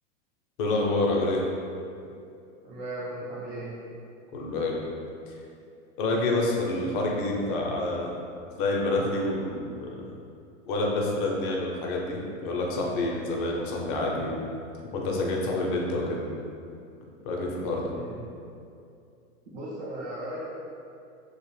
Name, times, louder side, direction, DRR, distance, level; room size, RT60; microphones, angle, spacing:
voice 1, 0.6-1.4 4.3-4.8 6.0-8.1 8.6-10.1 10.7-14.4 14.9-16.2 17.2-17.9, left 2 dB, 40° left, -1 dB, 0.5 m, -28 dB
voice 2, 2.6-3.7 17.9-18.2 19.5-20.4, right 1 dB, 50° right, -9 dB, 0.7 m, -36 dB
2.4 x 2.1 x 3.1 m, 2.5 s
hypercardioid pair, 125°, 39 cm